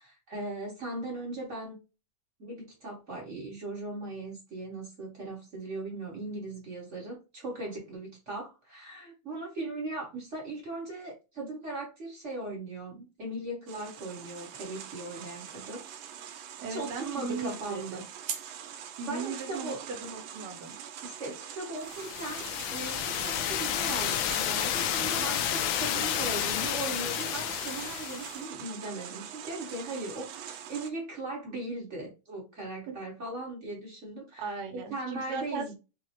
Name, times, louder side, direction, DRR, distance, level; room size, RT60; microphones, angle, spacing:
voice 1, 0.0-1.8 2.4-15.8 16.7-18.0 19.0-19.8 21.0-35.7, right 2 dB, 50° right, 0.8 m, -38 dB
sound 1, 13.7-30.9, right 9 dB, 90° right, 2.2 m, -43 dB
voice 2, 16.6-18.0 19.0-20.7 32.9-33.0 34.4-35.7, right 4 dB, 65° right, 1.3 m, -37 dB
sound 2, 21.9-28.4, left 10 dB, 85° left, 2.0 m, -31 dB
6.0 x 2.0 x 2.8 m
omnidirectional pair, 3.5 m